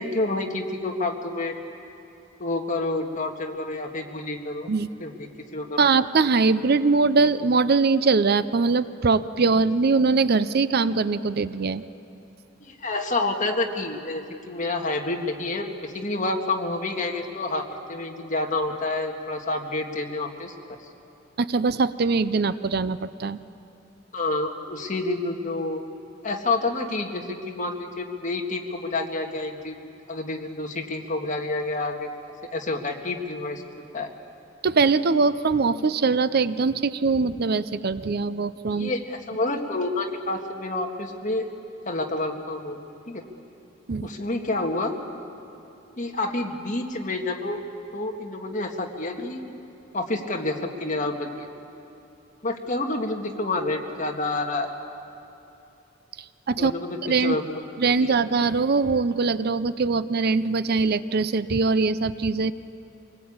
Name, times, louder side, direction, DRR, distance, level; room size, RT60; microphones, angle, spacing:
voice 1, 0.0-1.5 2.4-4.7 5.0-5.9 12.6-20.8 24.1-25.8 26.2-29.8 30.1-32.1 32.4-33.6 33.9-34.1 38.8-41.5 41.9-42.8 43.1-43.2 44.0-44.9 46.0-47.6 47.9-49.4 49.9-51.5 52.4-54.7 56.6-58.2, left 2 dB, 40° left, 2 dB, 1.8 m, -29 dB
voice 2, 5.8-11.8 21.4-23.4 34.6-38.9 43.9-44.1 56.5-56.7 57.0-57.4 57.8-62.5, right 4 dB, 55° right, 14 dB, 0.6 m, -22 dB
25.0 x 20.0 x 8.7 m, 2.8 s
head